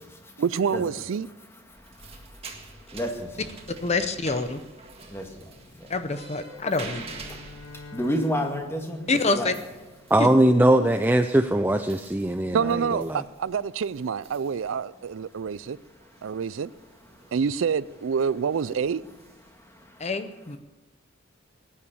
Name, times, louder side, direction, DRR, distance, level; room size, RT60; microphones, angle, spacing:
voice 1, 0.4-1.3 12.5-15.8 16.2-16.7 17.3-19.0, right 6 dB, 70° right, 0.4 m, -27 dB
sound 1, 1.7-19.8, right 3 dB, 30° right, 1.8 m, -48 dB
voice 2, 2.9-3.5 5.1-5.2 7.9-9.5, equal, 10° left, 1.9 m, -29 dB
voice 3, 3.8-4.6 5.9-7.1 9.1-9.5 10.2-10.3 20.0-20.6, left 3 dB, 30° left, 0.7 m, -26 dB
Bowed string instrument, 6.3-10.5, left 3 dB, 65° left, 1.4 m, -47 dB
voice 4, 10.1-13.2, right 1 dB, 10° right, 0.4 m, -21 dB
18.5 x 9.9 x 7.0 m
head